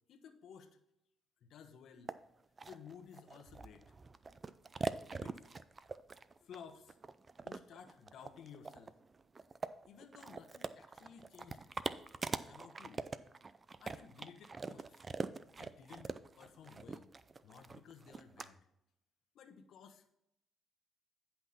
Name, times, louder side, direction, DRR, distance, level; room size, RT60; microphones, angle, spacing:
voice 1, 0.1-0.8 1.4-2.1 2.7-3.9 5.1-5.5 6.4-7.0 7.4-8.9 9.9-11.7 12.5-13.0 13.8-15.0 15.6-17.1 17.4-18.6 19.3-20.1, left 7 dB, 70° left, 8 dB, 1.1 m, -55 dB
sound 1, 2.1-2.2 2.6-18.5, right 4 dB, 30° right, 0.5 m, -43 dB
10.0 x 5.9 x 4.1 m, 0.82 s
cardioid pair, 90°, 0 cm